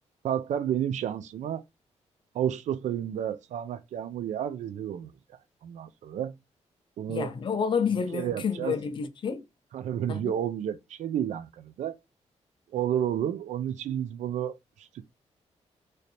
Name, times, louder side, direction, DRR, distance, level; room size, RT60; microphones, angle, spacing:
voice 1, 0.2-1.6 2.3-5.1 5.6-6.4 7.0-7.3 8.1-8.7 9.7-12.0 12.7-15.0, right 10 dB, 85° right, 0.4 m, -31 dB
voice 2, 7.1-9.5 10.1-10.3, left 6 dB, 45° left, 0.6 m, -29 dB
3.2 x 2.7 x 4.1 m
wide cardioid pair, 165°, 12 cm